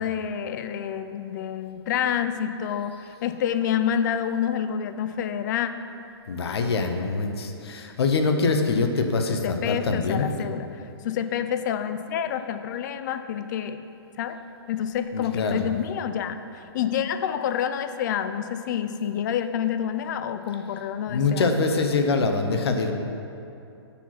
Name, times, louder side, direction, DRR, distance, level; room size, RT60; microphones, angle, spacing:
voice 1, 0.0-5.7 9.4-10.7 11.0-13.8 14.2-14.4 14.7-21.6, left 9 dB, 45° left, 10 dB, 0.4 m, -28 dB
voice 2, 6.3-10.3 15.1-15.7 21.1-22.9, left 4 dB, 70° left, 5 dB, 0.8 m, -24 dB
6.8 x 4.9 x 5.7 m, 2.7 s
hypercardioid pair, 145°, 14 cm